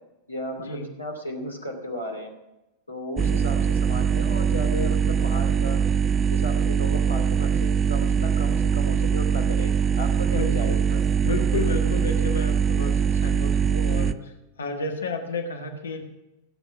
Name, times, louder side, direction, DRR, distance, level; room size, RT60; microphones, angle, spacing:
voice 1, 0.3-2.3 2.9-5.8 6.3-11.0, left 1 dB, 85° left, 2 dB, 2.6 m, -35 dB
sound 1, 3.2-14.1, right 7 dB, 25° right, 0.5 m, -22 dB
voice 2, 10.3-10.8 11.2-14.1 14.6-16.0, left 3 dB, 70° left, 4 dB, 1.5 m, -31 dB
17.5 x 7.9 x 6.0 m, 0.96 s
figure-of-eight pair, 90°, 0 cm